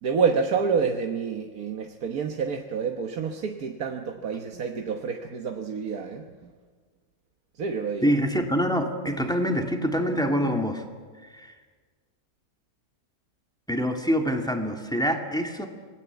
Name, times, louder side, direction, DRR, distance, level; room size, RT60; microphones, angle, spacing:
voice 1, 0.0-6.3 7.5-8.1, right 5 dB, 65° right, 4 dB, 1.7 m, -28 dB
voice 2, 8.0-10.8 11.3-11.5 13.7-15.7, equal, ahead, 3 dB, 2.2 m, -25 dB
26.5 x 20.0 x 8.2 m, 1.5 s
omnidirectional pair, 1.7 m